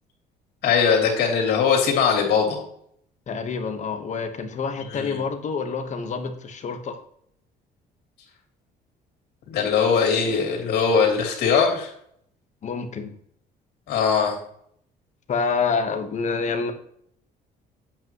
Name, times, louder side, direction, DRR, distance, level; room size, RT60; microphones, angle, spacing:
voice 1, 0.6-2.6 4.9-5.2 9.5-11.9 13.9-14.4, left 6 dB, 75° left, 0 dB, 3.2 m, -21 dB
voice 2, 3.3-7.0 12.6-13.1 15.3-16.7, left 5 dB, 45° left, 6 dB, 1.3 m, -27 dB
8.8 x 8.0 x 3.1 m, 0.67 s
cardioid pair, 110°, 17 cm